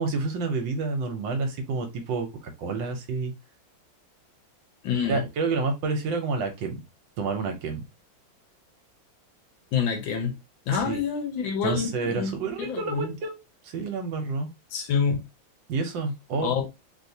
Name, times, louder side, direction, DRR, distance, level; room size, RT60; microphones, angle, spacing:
voice 1, 0.0-3.3 5.0-6.8 7.2-7.8 10.7-11.0 11.6-13.4 13.6-14.5 15.7-16.5, right 4 dB, 70° right, 1.4 m, -29 dB
voice 2, 4.8-5.3 9.7-10.3 10.7-12.3 12.6-13.1 14.7-15.2 16.4-16.7, left 6 dB, 75° left, 1.5 m, -27 dB
3.4 x 2.7 x 2.6 m
omnidirectional pair, 2.2 m